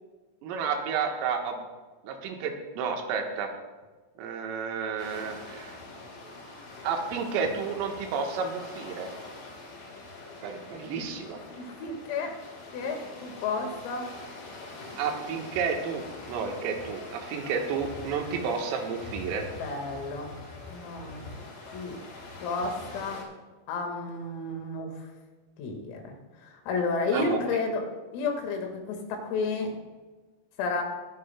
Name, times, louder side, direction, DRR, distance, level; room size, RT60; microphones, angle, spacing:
voice 1, 0.4-1.7 2.0-3.5 4.2-5.8 6.8-9.1 10.4-11.4 15.0-19.5 27.1-27.6, right 6 dB, 85° right, 3 dB, 3.9 m, -31 dB
sound 1, 5.0-23.2, left 2 dB, 55° left, 5.0 m, -44 dB
voice 2, 11.6-12.4 12.7-14.1 19.6-20.3 20.7-21.2 21.7-22.0 22.4-23.2 23.7-24.9 25.6-26.1 26.4-27.9 28.1-29.7 30.6-30.8, left 3 dB, 90° left, 3 dB, 4.5 m, -31 dB
22.0 x 10.5 x 2.2 m, 1.3 s
omnidirectional pair, 5.8 m